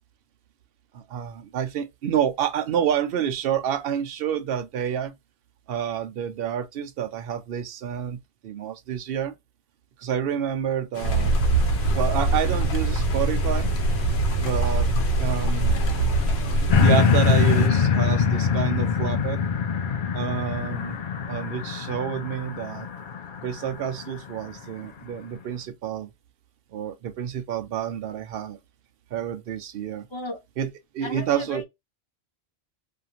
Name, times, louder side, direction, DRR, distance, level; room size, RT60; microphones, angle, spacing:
voice 1, 0.9-5.1 5.7-9.3 10.0-11.3 11.9-13.7 14.4-14.9 15.2-16.0 16.8-19.4 20.1-21.0 21.3-22.9 23.4-26.1 26.7-28.6 29.1-30.1 30.6-31.6, right 9 dB, 70° right, 0.8 m, -28 dB
sound 1, 10.9-17.7, left 6 dB, 90° left, 1.0 m, -36 dB
sound 2, 11.0-16.8, right 2 dB, 85° right, 1.1 m, -23 dB
sound 3, 16.7-24.1 24.6-24.7, left 6 dB, 60° left, 0.6 m, -23 dB
voice 2, 30.1-30.4 31.0-31.6, left 1 dB, 30° left, 0.9 m, -35 dB
2.7 x 2.5 x 2.8 m
omnidirectional pair, 1.1 m